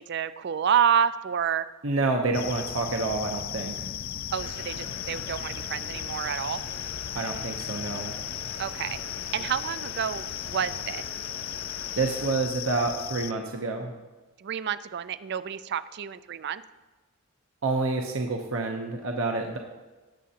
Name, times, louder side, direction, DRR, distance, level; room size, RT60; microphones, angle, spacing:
voice 1, 0.0-1.7 4.3-6.6 8.6-9.0 9.3-11.1 14.4-16.6, right 8 dB, 50° right, 15 dB, 0.4 m, -28 dB
voice 2, 1.8-3.9 7.1-8.1 12.0-13.9 17.6-19.6, right 3 dB, 70° right, 2 dB, 0.8 m, -28 dB
sound 1, 2.3-13.3, left 10 dB, 45° left, 0.3 m, -36 dB
sound 2, 4.4-12.3, left 3 dB, 80° left, 1.2 m, -44 dB
18.0 x 7.5 x 2.9 m, 1.2 s
head